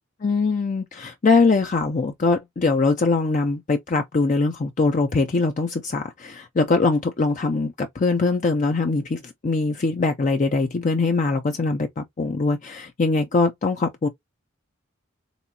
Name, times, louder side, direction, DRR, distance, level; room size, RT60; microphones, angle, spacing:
voice 1, 0.2-14.1, left 3 dB, 35° left, 0.4 m, -22 dB
4.1 x 3.5 x 2.7 m
head